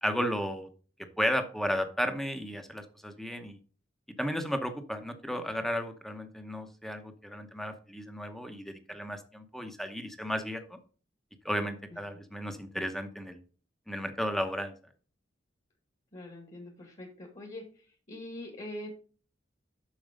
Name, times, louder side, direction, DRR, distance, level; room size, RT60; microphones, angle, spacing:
voice 1, 0.0-0.7 1.2-3.6 4.2-10.8 11.4-13.4 13.9-14.7, equal, ahead, 7 dB, 0.9 m, -34 dB
voice 2, 16.1-18.9, left 1 dB, 35° left, 2 dB, 2.0 m, -43 dB
7.4 x 6.2 x 5.1 m, 0.39 s
head